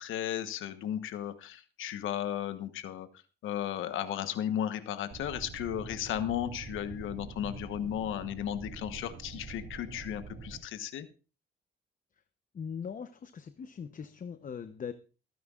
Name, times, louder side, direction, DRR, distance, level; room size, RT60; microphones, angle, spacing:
voice 1, 0.0-3.1 3.4-11.1, left 10 dB, 85° left, 10 dB, 1.2 m, -35 dB
sound 1, 5.1-10.6, right 5 dB, 60° right, 2.1 m, -45 dB
voice 2, 12.5-14.9, left 7 dB, 40° left, 10 dB, 0.8 m, -40 dB
23.0 x 9.4 x 2.4 m, 0.33 s
cardioid pair, 90°, 20 cm